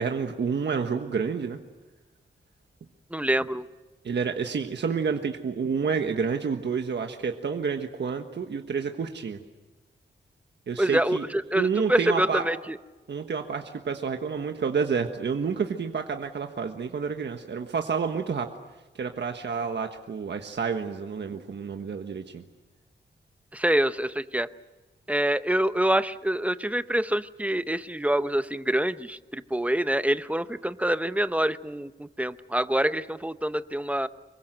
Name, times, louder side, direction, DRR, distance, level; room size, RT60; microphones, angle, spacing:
voice 1, 0.0-1.6 4.0-9.4 10.7-11.2 11.5-12.4 13.1-18.5 19.0-22.4, right 5 dB, 65° right, 5 dB, 1.4 m, -29 dB
voice 2, 3.1-3.6 10.8-12.8 23.5-24.5 25.1-34.1, right 1 dB, 5° right, 12 dB, 0.8 m, -26 dB
25.5 x 22.5 x 7.9 m, 1.2 s
wide cardioid pair, 110°, 19 cm